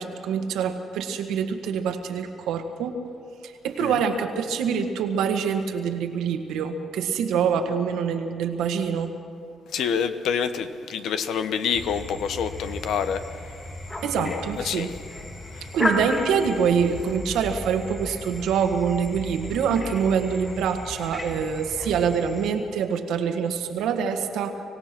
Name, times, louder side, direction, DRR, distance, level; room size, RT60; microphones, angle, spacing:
voice 1, 0.0-2.9 3.4-9.1 14.0-14.9 15.7-24.6, right 7 dB, 85° right, 5 dB, 1.7 m, -25 dB
voice 2, 9.7-13.2 14.2-14.9 15.5-15.7, left 7 dB, 75° left, 10 dB, 1.1 m, -27 dB
sound 1, 11.7-22.5, left 2 dB, 30° left, 5.2 m, -34 dB
25.5 x 17.0 x 6.1 m, 2.4 s
cardioid pair, 90°, 0 cm